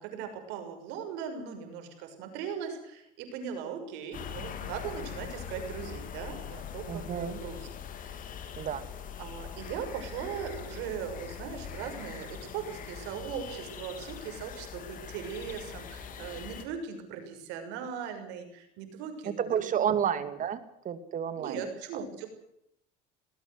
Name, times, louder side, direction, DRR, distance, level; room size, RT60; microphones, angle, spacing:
voice 1, 0.0-7.7 9.2-19.8 21.3-22.3, right 7 dB, 80° right, 7 dB, 6.4 m, -39 dB
sound 1, 4.1-16.7, left 8 dB, 50° left, 3.5 m, -42 dB
voice 2, 6.9-7.4 8.6-8.8 19.2-21.7 21.9-22.0, right 8 dB, 45° right, 12 dB, 2.6 m, -31 dB
20.0 x 18.0 x 7.9 m, 0.75 s
cardioid pair, 110°, 18 cm